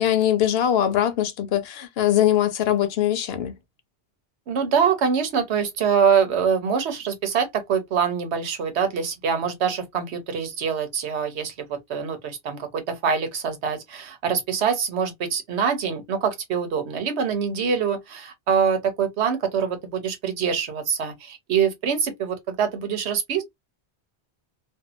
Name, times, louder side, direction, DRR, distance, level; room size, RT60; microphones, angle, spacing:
voice 1, 0.0-3.5, left 11 dB, 70° left, 0.8 m, -21 dB
voice 2, 4.5-23.4, right 7 dB, 85° right, 1.1 m, -24 dB
2.7 x 2.3 x 2.4 m
omnidirectional pair, 1.1 m